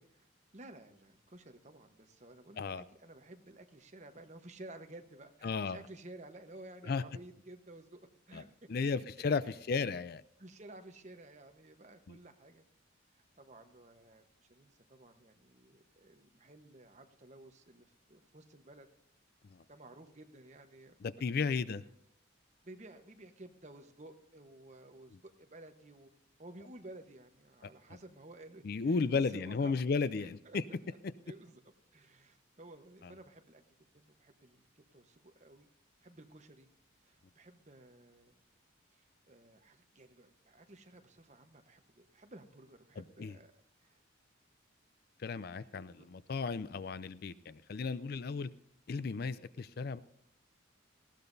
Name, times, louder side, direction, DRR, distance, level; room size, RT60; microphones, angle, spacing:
voice 1, 0.5-8.9 9.4-9.6 10.4-12.6 13.1-14.2 14.5-18.9 19.7-21.0 22.6-26.1 26.4-29.8 30.2-30.6 31.2-33.6 33.9-35.7 36.0-36.7 37.0-38.3 38.9-43.5 43.8-44.0 45.5-46.1, right 2 dB, 35° right, 6 dB, 1.1 m, -54 dB
voice 2, 5.4-5.8 6.9-7.0 8.3-8.4 8.7-10.2 12.1-12.2 21.0-21.8 28.6-30.6 43.2-43.3 45.2-48.5 48.9-50.0, left 4 dB, 50° left, 16 dB, 0.4 m, -34 dB
19.5 x 15.5 x 2.7 m, 0.74 s
head